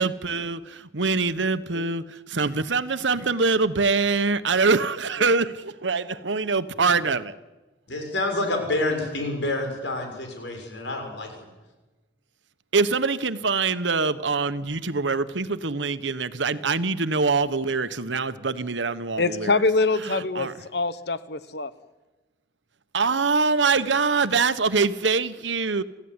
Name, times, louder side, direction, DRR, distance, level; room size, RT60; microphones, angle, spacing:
voice 1, 0.0-7.3 12.7-19.6 20.0-20.5 22.9-25.8, right 4 dB, 85° right, 13 dB, 1.2 m, -24 dB
voice 2, 7.9-11.4, left 2 dB, 85° left, 3 dB, 6.8 m, -28 dB
voice 3, 19.2-21.7, left 3 dB, 65° left, 13 dB, 1.2 m, -24 dB
29.0 x 15.5 x 9.8 m, 1.2 s
head